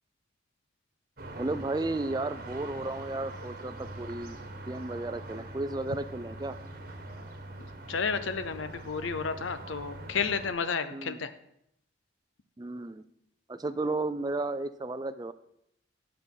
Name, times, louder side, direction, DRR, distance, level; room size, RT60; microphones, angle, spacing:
sound 1, 1.2-10.5, right 1 dB, 45° right, 1.3 m, -43 dB
voice 1, 1.3-4.4 4.7-6.6 10.9-11.2 12.6-13.0 13.5-15.3, right 2 dB, 20° right, 11 dB, 0.4 m, -33 dB
voice 2, 7.6-11.3, left 5 dB, 85° left, 12 dB, 0.7 m, -32 dB
8.2 x 6.7 x 5.4 m, 0.77 s
head